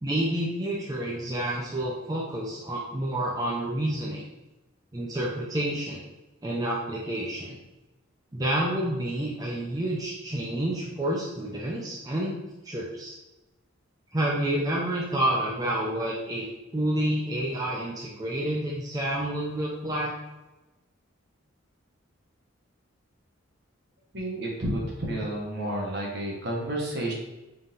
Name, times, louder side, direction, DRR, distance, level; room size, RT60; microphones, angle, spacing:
voice 1, 0.0-4.2 4.9-6.0 6.4-7.6 8.3-12.3 12.6-13.1 14.1-16.5 16.7-20.1, right 1 dB, 20° right, -4 dB, 0.5 m, -29 dB
voice 2, 24.1-27.1, right 1 dB, 55° right, -1 dB, 0.9 m, -30 dB
4.0 x 3.8 x 2.5 m, 1.1 s
head